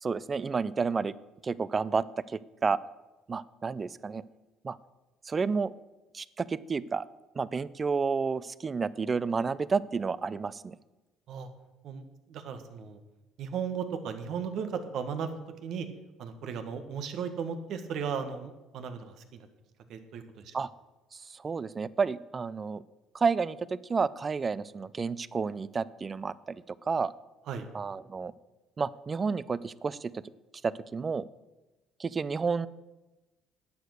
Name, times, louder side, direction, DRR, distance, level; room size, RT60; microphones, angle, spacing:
voice 1, 0.0-1.1 1.4-2.8 3.3-4.2 4.6-4.8 5.2-5.7 6.1-7.0 7.4-10.8 20.5-20.7 21.1-22.8 23.1-27.1 27.7-28.3 28.8-30.2 30.6-31.3 32.0-32.7, right 5 dB, 30° right, 19 dB, 0.4 m, -30 dB
voice 2, 12.3-13.0 13.4-15.9 16.2-19.5 19.9-20.5 27.5-27.7, right 6 dB, 65° right, 8 dB, 1.5 m, -36 dB
11.5 x 8.4 x 6.6 m, 1.1 s
cardioid pair, 115°, 0 cm